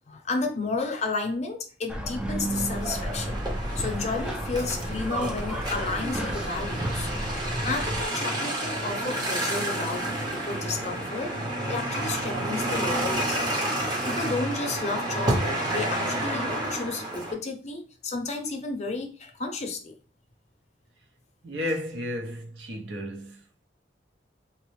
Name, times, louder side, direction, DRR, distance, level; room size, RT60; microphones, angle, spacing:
voice 1, 0.1-3.4 3.8-7.1 7.6-11.3 11.7-13.5 14.0-19.9, left 3 dB, 40° left, 0.6 m, -32 dB
sound 1, 1.9-8.1, right 1 dB, 5° right, 0.4 m, -32 dB
sound 2, 2.4-17.3, right 1 dB, 25° right, 0.9 m, -30 dB
voice 2, 21.4-23.4, left 1 dB, 70° right, 0.7 m, -33 dB
4.0 x 2.1 x 3.0 m
head